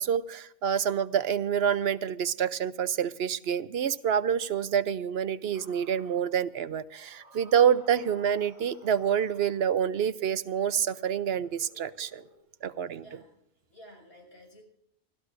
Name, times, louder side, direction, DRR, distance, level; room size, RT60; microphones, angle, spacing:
voice 1, 0.0-12.2 12.6-13.0, right 8 dB, 75° right, 14 dB, 0.9 m, -27 dB
sound 1, 5.5-6.4 6.9-9.8 10.7-12.4, equal, 15° left, 6.1 m, -57 dB
voice 2, 13.0-13.3 13.7-14.6, equal, 75° left, 0 dB, 7.0 m, -52 dB
30.0 x 13.0 x 2.6 m, 0.79 s
omnidirectional pair, 1.1 m